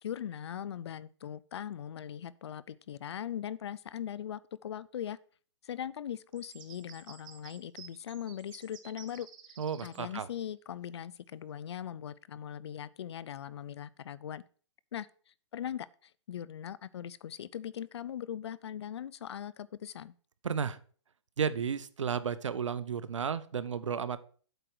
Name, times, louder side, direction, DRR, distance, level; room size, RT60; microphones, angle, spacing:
voice 1, 0.0-5.2 5.6-9.6 9.8-14.4 14.9-15.1 15.5-20.1, left 9 dB, 60° left, 0.5 m, -40 dB
sound 1, 6.3-10.0, right 9 dB, 45° right, 1.3 m, -52 dB
voice 2, 9.6-10.3 20.4-20.8 21.4-24.2, right 7 dB, 85° right, 0.8 m, -33 dB
7.9 x 4.6 x 6.4 m
hypercardioid pair, 150°, 15 cm